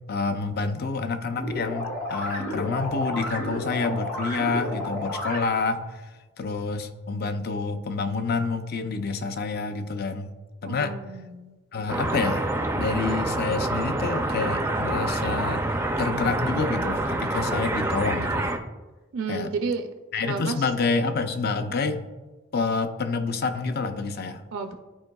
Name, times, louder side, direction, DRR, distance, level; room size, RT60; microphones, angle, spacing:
voice 1, 0.1-6.0 6.4-10.3 10.6-10.9 11.7-15.7 16.0-18.5 19.3-19.5 20.1-22.0 22.5-24.4, left 4 dB, 50° left, 9 dB, 0.5 m, -28 dB
sound 1, 1.4-5.8, left 1 dB, 75° left, 1.4 m, -32 dB
voice 2, 10.6-11.5 19.1-19.8 20.2-20.6 24.5-24.7, right 4 dB, 75° right, 6 dB, 0.5 m, -31 dB
sound 2, 11.9-18.6, right 2 dB, 10° right, 0.4 m, -27 dB
12.5 x 4.5 x 2.3 m, 1.2 s
head